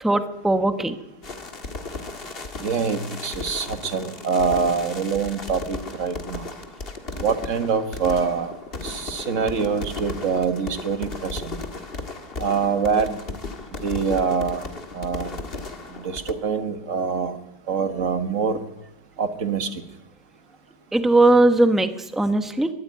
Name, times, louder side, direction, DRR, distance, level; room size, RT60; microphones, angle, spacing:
voice 1, 0.0-1.0 20.9-22.7, right 2 dB, ahead, 8 dB, 0.4 m, -19 dB
sound 1, 1.2-16.3, left 3 dB, 30° left, 1.7 m, -35 dB
voice 2, 2.6-6.4 7.2-8.5 8.8-11.6 12.4-13.2 13.8-14.6 14.9-15.3 16.0-17.4 17.7-18.6 19.2-19.7, right 5 dB, 40° right, 8 dB, 1.7 m, -25 dB
22.5 x 13.5 x 9.4 m, 0.93 s
omnidirectional pair, 2.4 m